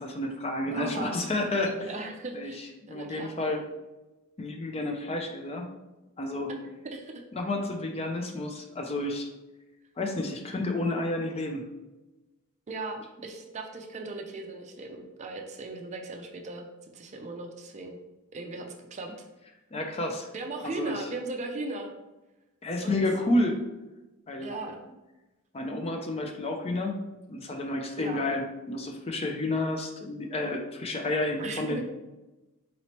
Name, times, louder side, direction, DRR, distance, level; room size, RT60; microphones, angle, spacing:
voice 1, 0.0-1.9 2.3-3.6 4.4-5.7 6.2-6.5 7.3-9.3 10.0-11.7 19.7-20.3 20.6-21.0 22.6-23.6 24.3-24.5 25.5-27.0 27.3-31.8, left 2 dB, 25° left, 3 dB, 0.4 m, -30 dB
voice 2, 0.6-1.3 1.6-3.3 6.5-6.6 6.8-7.1 12.7-16.7 16.9-18.0 18.3-19.3 20.3-21.9 22.8-23.0 24.4-24.8 28.0-28.2 31.4-31.8, right 2 dB, 30° right, 3 dB, 0.4 m, -38 dB
4.0 x 3.1 x 2.9 m, 1.0 s
head